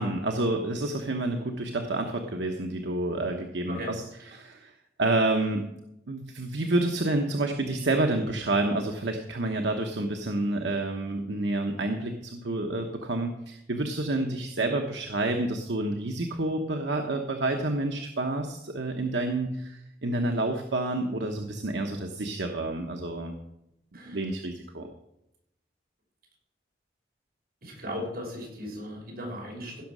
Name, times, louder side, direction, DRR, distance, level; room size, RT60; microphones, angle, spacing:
voice 1, 0.0-3.8 4.3-4.7 5.0-5.7 6.1-23.4 24.1-24.9, right 2 dB, 75° right, 3 dB, 1.0 m, -29 dB
voice 2, 23.9-24.3 27.6-29.8, left 1 dB, 55° right, -3 dB, 5.8 m, -37 dB
16.0 x 6.4 x 6.2 m, 0.85 s
head